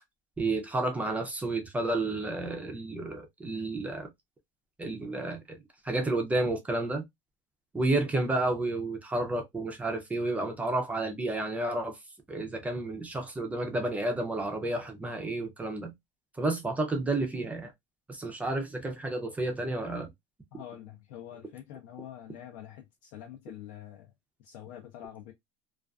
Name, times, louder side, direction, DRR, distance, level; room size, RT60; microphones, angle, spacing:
voice 1, 0.4-4.1 4.8-5.6 5.8-7.0 7.7-12.0 12.3-15.9 16.4-17.7 18.1-20.1, right 2 dB, 10° right, 0.4 m, -31 dB
voice 2, 20.5-24.1 24.4-25.3, left 11 dB, 65° left, 0.5 m, -46 dB
2.4 x 2.3 x 2.3 m
cardioid pair, 160°, 17 cm